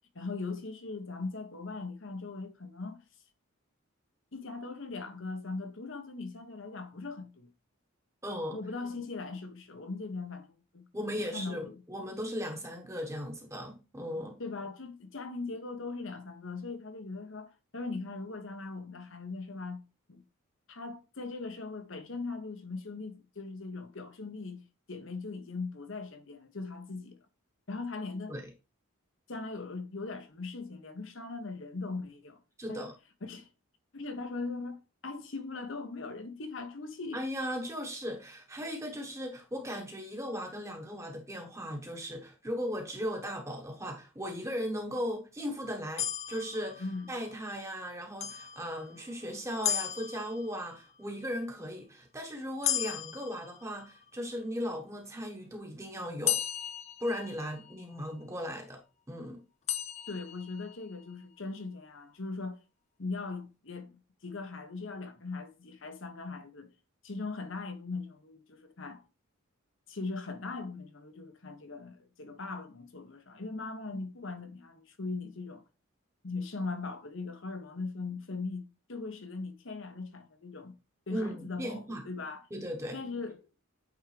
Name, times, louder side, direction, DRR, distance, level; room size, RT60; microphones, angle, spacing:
voice 1, 0.1-3.0 4.3-7.5 8.5-11.7 14.4-19.8 20.1-20.2 20.7-24.6 24.9-27.2 27.7-28.3 29.3-32.4 32.7-32.9 33.2-33.5 33.9-34.8 35.0-37.2 46.8-47.1 60.1-62.6 63.0-66.7 67.0-69.0 69.9-75.6 76.2-80.7 81.1-82.5 82.9-83.6, left 3 dB, 60° left, 1.0 m, -40 dB
voice 2, 8.2-8.6 10.9-14.4 28.3-28.5 32.6-32.9 37.1-46.8 47.1-56.4 57.0-58.8 59.1-59.4 73.9-74.0 81.1-82.0 82.5-83.0, equal, 15° right, 1.1 m, -37 dB
sound 1, 46.0-47.3 48.2-49.1 49.6-50.9 52.6-54.1 56.3-57.8 59.7-60.8, left 10 dB, 30° left, 0.3 m, -35 dB
8.5 x 3.6 x 3.3 m
head